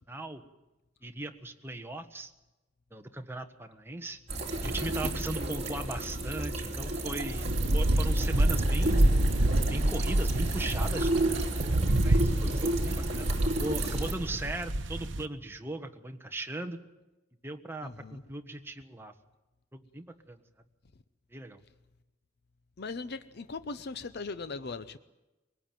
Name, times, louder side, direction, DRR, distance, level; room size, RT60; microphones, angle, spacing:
voice 1, 0.1-0.4 1.0-2.3 2.9-4.2 4.6-9.1 9.7-11.5 12.0-16.8 17.4-19.1 19.7-20.4 21.3-21.6, right 2 dB, 10° right, 5 dB, 1.3 m, -38 dB
sound 1, 4.3-14.1, right 1 dB, 35° right, 3.4 m, -32 dB
sound 2, 7.4-15.2, right 1 dB, 70° right, 1.1 m, -27 dB
voice 2, 17.8-18.2 22.8-25.0, left 4 dB, 60° left, 13 dB, 0.7 m, -39 dB
22.5 x 18.5 x 9.1 m, 1.1 s
head